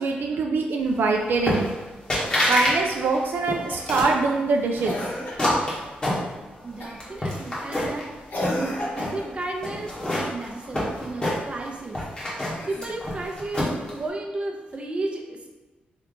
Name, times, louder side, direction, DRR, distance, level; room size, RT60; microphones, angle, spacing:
voice 1, 0.0-1.7 2.5-5.0, right 3 dB, 70° right, 2 dB, 0.3 m, -23 dB
sound 1, 1.5-1.8 2.1-2.8 3.1-4.2 4.8-6.6 7.0-8.0 8.4-9.2 9.6-11.7 11.9-13.9, left 1 dB, 25° left, 1.3 m, -26 dB
Cough, 3.7-4.1 4.9-5.6 6.8-7.1 8.3-9.4 12.5-13.3 14.7-14.8, equal, 60° left, 1.0 m, -33 dB
voice 2, 6.6-8.1 8.5-12.0 12.7-15.5, right 2 dB, 30° right, 1 dB, 0.6 m, -33 dB
3.4 x 2.8 x 3.8 m, 1.2 s
cardioid pair, 100°, 4 cm